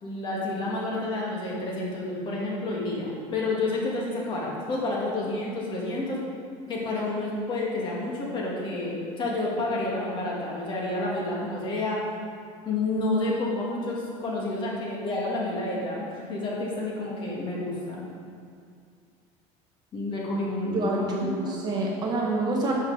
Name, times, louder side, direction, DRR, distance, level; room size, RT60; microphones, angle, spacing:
voice 1, 0.0-6.2 6.7-12.0 12.7-18.0 19.9-20.9 21.2-21.5, left 2 dB, 30° left, -4 dB, 1.8 m, -29 dB
voice 2, 20.7-22.7, right 2 dB, 30° right, -2 dB, 1.0 m, -27 dB
10.0 x 6.0 x 4.0 m, 2.2 s
cardioid pair, 170°, 15 cm